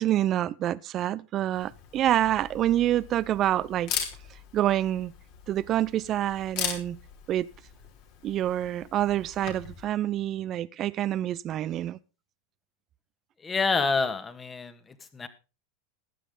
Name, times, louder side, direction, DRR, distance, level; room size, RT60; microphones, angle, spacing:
voice 1, 0.0-3.9 4.5-5.1 5.5-7.0 7.3-7.5 8.2-12.0, right 12 dB, 40° right, 0.6 m, -27 dB
Camera, 1.5-9.9, left 8 dB, 55° left, 3.6 m, -39 dB
voice 2, 13.4-15.3, left 4 dB, 20° left, 1.8 m, -28 dB
15.0 x 10.5 x 3.8 m
hypercardioid pair, 100°, 0 cm